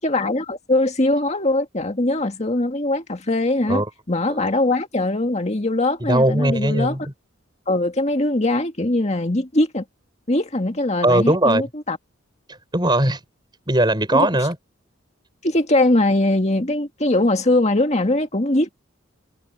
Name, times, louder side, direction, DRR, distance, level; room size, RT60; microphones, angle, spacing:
voice 1, 0.0-3.8 4.1-6.9 7.7-9.8 10.3-12.0 14.1-14.3 15.4-18.7, left 2 dB, 30° left, 2.0 m, -21 dB
voice 2, 6.0-7.1 11.0-11.6 12.5-13.2 13.7-14.6, right 1 dB, 20° right, 5.8 m, -19 dB
head